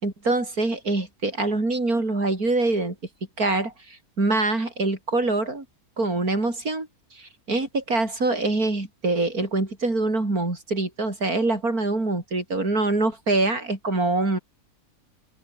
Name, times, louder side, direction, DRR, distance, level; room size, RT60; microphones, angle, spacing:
voice 1, 0.0-3.0 3.4-5.7 6.0-6.9 7.1-14.4, right 2 dB, 75° right, 5.7 m, -24 dB
open air
omnidirectional pair, 1.6 m